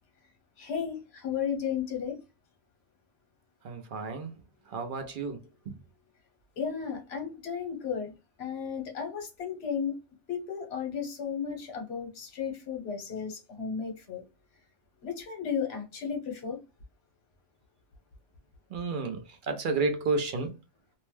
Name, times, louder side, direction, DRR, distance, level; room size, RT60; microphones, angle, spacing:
voice 1, 0.6-2.2 6.6-8.1 8.4-10.0 10.3-14.2 15.0-16.6, left 7 dB, 60° left, 1.1 m, -34 dB
voice 2, 3.6-4.3 4.7-5.4 18.7-19.2 19.5-20.5, right 3 dB, 60° right, 0.5 m, -31 dB
2.6 x 2.1 x 3.1 m
omnidirectional pair, 1.3 m